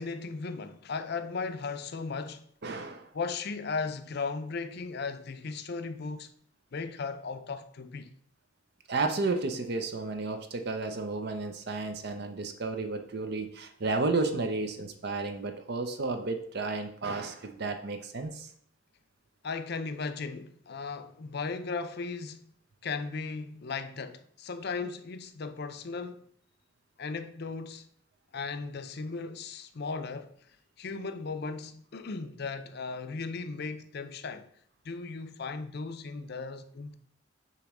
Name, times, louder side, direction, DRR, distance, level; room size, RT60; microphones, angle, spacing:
voice 1, 0.0-2.5 3.1-6.3 6.7-8.1 19.4-22.4 22.8-26.3 27.0-27.9 28.3-30.3 30.8-34.5 34.8-37.0, left 4 dB, 55° left, 0.5 m, -36 dB
voice 2, 2.6-3.1 8.9-18.5, right 3 dB, 55° right, 0.7 m, -32 dB
6.8 x 3.1 x 6.0 m
head